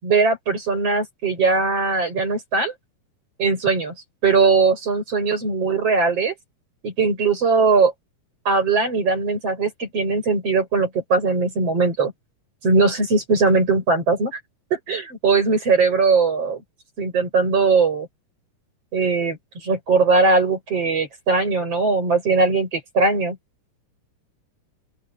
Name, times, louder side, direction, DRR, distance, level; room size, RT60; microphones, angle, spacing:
voice 1, 0.0-2.7 3.4-3.9 4.2-6.3 6.8-7.9 8.4-12.1 12.6-14.4 14.7-16.6 17.0-18.1 18.9-19.4 19.6-23.4, right 4 dB, 45° right, 8.4 m, -20 dB
open air
omnidirectional pair, 3.7 m